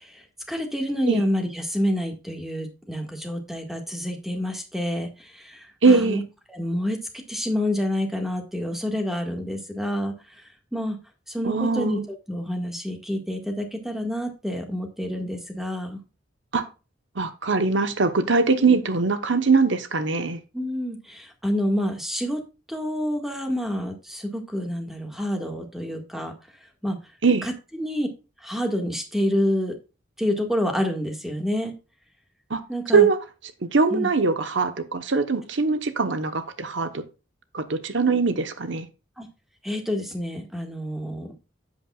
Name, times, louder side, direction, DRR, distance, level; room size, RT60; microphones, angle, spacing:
voice 1, 0.0-6.2 6.5-7.0 7.3-11.0 11.3-12.0 12.3-16.0 20.5-22.4 22.7-26.3 26.8-27.0 27.4-28.1 28.4-29.8 30.2-31.7 32.7-33.1 33.9-34.1 39.2-39.3 39.6-41.3, equal, ahead, 1.7 m, -28 dB
voice 2, 5.8-6.2 11.4-12.1 16.5-16.6 17.2-20.4 27.2-27.5 32.5-32.6 32.9-33.2 33.7-37.0 37.5-38.9, right 4 dB, 70° right, 1.0 m, -21 dB
10.5 x 8.5 x 2.4 m
head